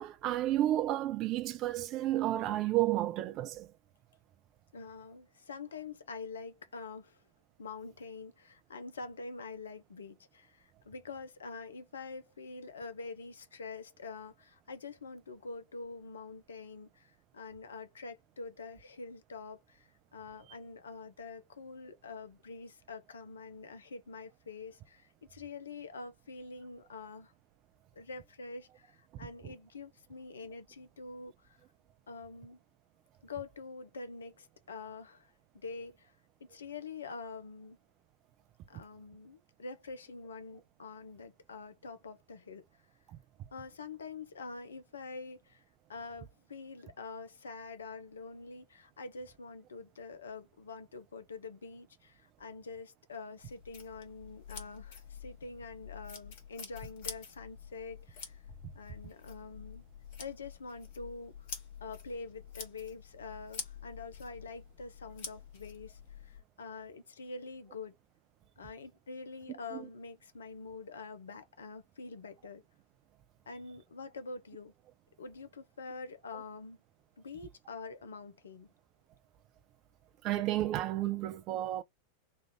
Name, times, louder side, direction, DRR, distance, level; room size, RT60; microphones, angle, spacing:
voice 1, 0.0-3.7 80.2-81.8, right 14 dB, 35° right, 0.5 m, -31 dB
voice 2, 4.7-7.2 7.6-27.3 27.9-31.6 32.1-32.6 33.2-36.1 36.4-37.8 38.7-42.7 43.5-45.6 45.9-58.4 58.7-59.8 60.2-61.5 61.8-68.0 68.6-72.6 73.5-74.7 75.2-76.8 77.2-78.7, left 4 dB, 70° left, 0.7 m, -46 dB
sound 1, 53.4-66.4, left 6 dB, 50° left, 1.3 m, -48 dB
3.1 x 2.5 x 3.1 m
figure-of-eight pair, 90°, 0 cm